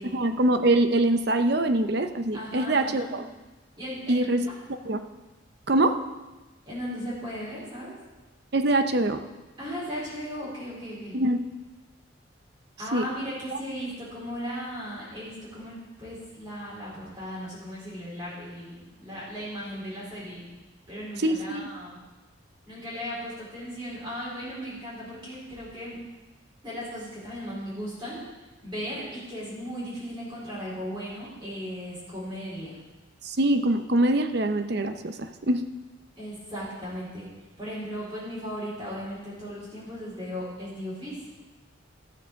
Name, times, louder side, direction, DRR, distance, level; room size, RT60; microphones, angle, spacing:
voice 1, 0.0-3.2 4.1-4.4 4.9-5.0 5.7-6.0 8.5-9.2 11.1-11.4 12.9-13.0 13.5-13.6 21.2-21.7 33.2-35.6, right 1 dB, 55° right, 8 dB, 0.7 m, -24 dB
voice 2, 2.3-3.1 3.8-4.2 6.7-8.0 9.6-11.2 12.8-20.5 20.9-22.0 22.7-26.0 26.6-28.2 28.6-32.8 36.2-37.2 37.6-41.2, equal, 25° right, -8 dB, 4.4 m, -36 dB
13.0 x 7.0 x 6.4 m, 1.1 s
head